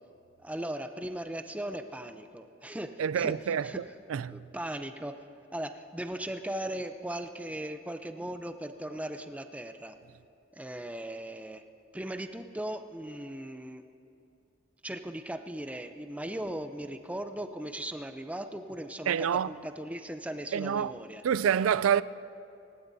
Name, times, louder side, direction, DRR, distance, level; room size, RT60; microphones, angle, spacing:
voice 1, 0.4-3.9 4.3-5.3 5.5-10.0 10.5-11.6 11.9-13.8 14.8-21.2, right 1 dB, 5° right, 0.6 m, -38 dB
voice 2, 3.0-4.5 19.1-19.5 20.5-20.9 21.2-22.0, right 8 dB, 90° right, 0.4 m, -27 dB
27.5 x 15.5 x 2.7 m
head